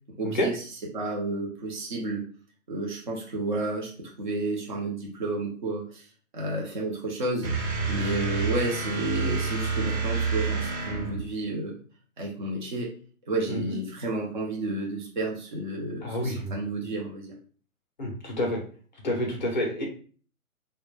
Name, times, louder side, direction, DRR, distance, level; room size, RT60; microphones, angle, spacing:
voice 1, 0.2-0.6 0.9-2.2 2.7-6.1 6.3-7.5 7.9-11.7 12.2-12.9 13.3-17.3, right 2 dB, 35° right, -2 dB, 0.5 m, -31 dB
sound 1, 7.4-11.4, right 4 dB, 70° right, 1.0 m, -28 dB
voice 2, 16.0-16.5 18.0-18.6 19.0-19.8, left 1 dB, 35° left, 0 dB, 0.5 m, -28 dB
2.2 x 2.1 x 3.0 m, 0.42 s
hypercardioid pair, 165°, 43 cm